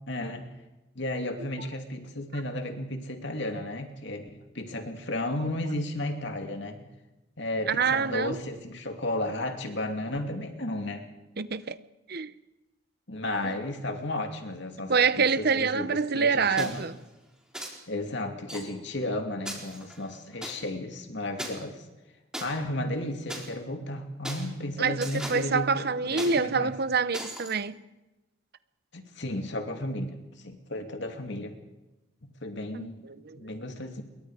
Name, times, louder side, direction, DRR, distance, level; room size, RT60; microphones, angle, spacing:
voice 1, 0.1-0.5 0.9-6.9 7.4-11.1 13.1-16.8 17.9-21.8 22.4-26.7 28.9-31.6 32.4-32.9 33.3-34.0, left 1 dB, 60° left, 2.7 m, -33 dB
voice 2, 7.7-8.4 11.4-11.8 12.1-12.3 13.4-13.6 14.9-16.9 24.8-27.8 32.7-33.4, right 5 dB, 50° right, 0.8 m, -26 dB
sound 1, 16.6-16.9 17.5-17.7 18.5-18.6 19.4-20.5 21.4-21.5 22.3-22.4 23.3-23.5 24.2-24.4 25.0-25.4 26.2-26.3 27.1-27.5, right 1 dB, 5° right, 4.0 m, -37 dB
27.0 x 22.5 x 5.0 m
head